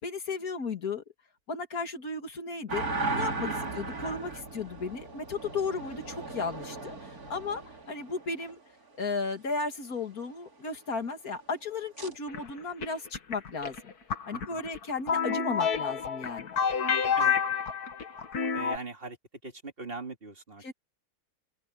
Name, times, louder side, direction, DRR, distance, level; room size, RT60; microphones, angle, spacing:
voice 1, 0.0-1.0 1.5-3.5 3.7-8.6 9.0-13.9 14.3-16.5 20.6-20.7, left 4 dB, 70° left, 2.6 m, -35 dB
sound 1, 2.7-8.5 12.0-12.1, right 3 dB, 75° right, 3.7 m, -36 dB
sound 2, 12.3-18.8, left 6 dB, 85° left, 2.3 m, -29 dB
voice 2, 14.3-14.6 17.1-17.4 18.5-19.2 19.4-20.7, right 3 dB, 35° right, 2.6 m, -41 dB
open air
omnidirectional pair, 1.6 m